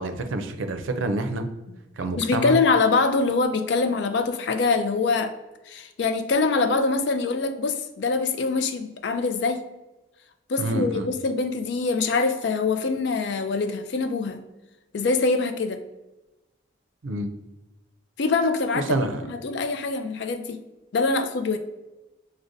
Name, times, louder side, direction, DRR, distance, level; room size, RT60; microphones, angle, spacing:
voice 1, 0.0-1.5 2.0-2.6 10.6-11.1 17.0-17.3 18.7-19.2, right 2 dB, 85° right, 7 dB, 0.5 m, -27 dB
voice 2, 2.2-5.3 5.7-9.6 10.5-14.4 14.9-15.8 18.2-20.6 20.9-21.6, left 4 dB, 65° left, 8 dB, 0.4 m, -24 dB
6.2 x 2.1 x 2.6 m, 1.0 s
head